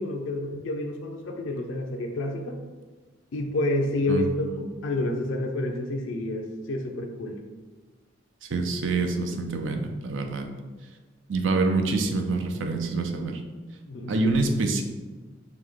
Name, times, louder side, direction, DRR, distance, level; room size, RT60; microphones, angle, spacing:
voice 1, 0.0-2.6 3.3-7.4 13.9-14.1, left 1 dB, 85° left, 3 dB, 0.5 m, -29 dB
voice 2, 8.5-10.5 11.3-13.4 14.1-14.8, right 3 dB, 75° right, 5 dB, 0.5 m, -26 dB
4.7 x 2.2 x 3.7 m, 1.3 s
head